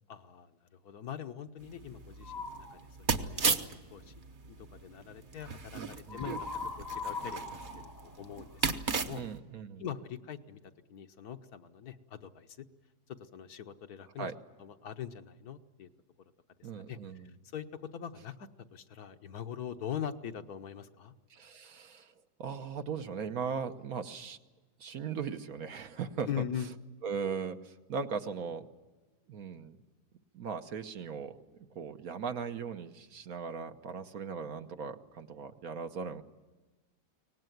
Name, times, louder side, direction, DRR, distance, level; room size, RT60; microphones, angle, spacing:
voice 1, 0.1-4.1 4.5-9.2 9.8-10.6 10.9-12.6 13.2-14.3 14.6-15.9 16.9-17.0 17.5-17.7 17.9-21.1 26.3-26.7, left 9 dB, 70° left, 7 dB, 1.4 m, -42 dB
sound 1, 1.6-9.4, right 4 dB, 35° right, 1.0 m, -36 dB
sound 2, 2.2-2.8 6.1-8.8, left 4 dB, 15° left, 0.8 m, -40 dB
voice 2, 5.8-6.3 9.0-9.8 14.2-14.3 16.6-17.3 21.3-22.1 22.4-24.4 24.8-26.3 27.0-28.7 29.3-29.8 30.3-31.4 31.7-36.2, right 6 dB, 65° right, 7 dB, 1.4 m, -38 dB
23.5 x 19.0 x 9.3 m, 1.2 s
omnidirectional pair, 1.7 m